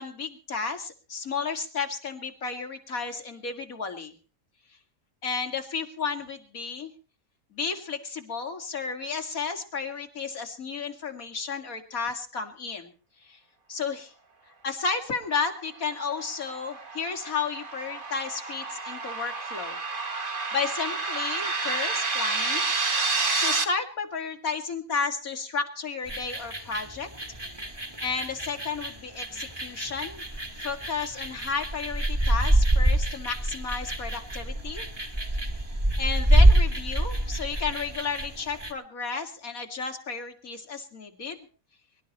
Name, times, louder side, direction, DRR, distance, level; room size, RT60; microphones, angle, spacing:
voice 1, 0.0-4.1 5.2-6.9 7.5-12.9 13.3-13.4 13.7-14.1 14.6-19.8 20.1-22.7 23.3-27.1 28.0-30.2 30.6-34.9 36.0-41.5, left 5 dB, 85° left, 5 dB, 2.7 m, -32 dB
sound 1, 15.9-23.6, right 3 dB, 40° right, 1.8 m, -29 dB
sound 2, 26.1-38.7, right 1 dB, 20° right, 1.7 m, -26 dB
24.5 x 12.0 x 4.2 m, 0.38 s
omnidirectional pair, 1.4 m